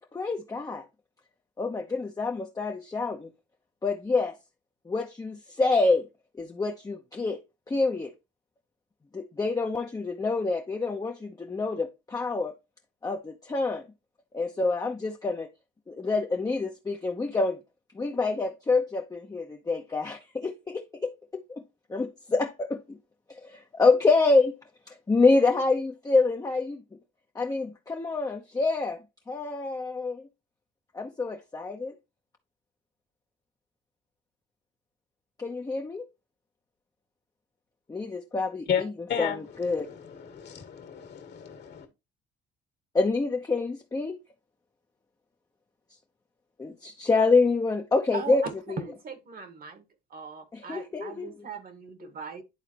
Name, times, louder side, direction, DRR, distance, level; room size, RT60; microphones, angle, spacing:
voice 1, 0.1-0.9 1.6-3.3 3.8-4.3 4.9-6.1 6.4-7.4 7.7-8.1 9.1-12.5 13.0-13.8 14.3-15.5 15.9-17.6 17.9-21.6 21.9-23.0 23.3-24.6 24.9-26.8 27.3-29.0 29.3-30.2 30.9-32.0 35.4-36.1 37.9-38.9 39.2-39.3 39.6-39.9 42.9-44.2 46.6-48.4 48.7-48.8 50.5-51.3, left 3 dB, 20° left, 0.8 m, -27 dB
voice 2, 39.1-41.9, left 8 dB, 60° left, 1.8 m, -33 dB
voice 3, 48.1-49.8 50.1-52.4, right 5 dB, 50° right, 1.5 m, -39 dB
11.0 x 3.9 x 3.0 m
cardioid pair, 90°, 20 cm